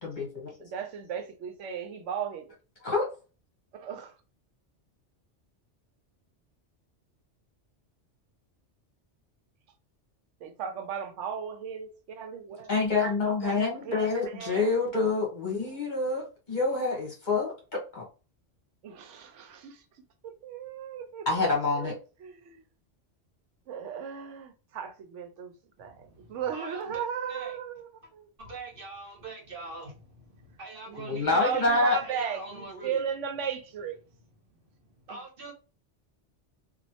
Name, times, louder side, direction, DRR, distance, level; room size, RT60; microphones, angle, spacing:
voice 1, 0.0-0.5 2.8-3.1 12.7-18.0 21.2-21.9 31.0-32.0, left 3 dB, 40° left, 1.2 m, -27 dB
voice 2, 0.6-2.4 3.7-4.1 10.4-12.7 13.3-14.6 15.6-15.8 18.8-19.8 20.2-21.5 21.8-22.6 23.7-25.5 25.8-25.9 26.3-27.9 28.1-28.3 30.9-34.0 35.1-35.2, right 7 dB, 85° right, 1.0 m, -36 dB
voice 3, 25.8-27.6 28.4-31.6 32.0-33.0 34.5-35.5, right 3 dB, 50° right, 1.2 m, -44 dB
3.0 x 2.5 x 2.7 m
omnidirectional pair, 1.2 m